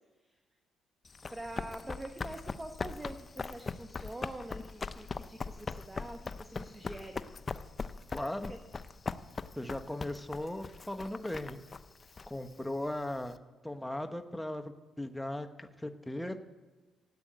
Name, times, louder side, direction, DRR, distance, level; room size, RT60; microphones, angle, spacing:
Run, 1.1-13.3, left 4 dB, 35° left, 0.6 m, -41 dB
voice 1, 1.3-7.3 8.5-8.6, right 1 dB, 15° right, 6 dB, 1.2 m, -45 dB
voice 2, 8.1-8.5 9.6-11.6 12.3-16.4, left 1 dB, 5° left, 6 dB, 1.1 m, -38 dB
14.5 x 8.9 x 9.0 m, 1.2 s
cardioid pair, 90°, 0 cm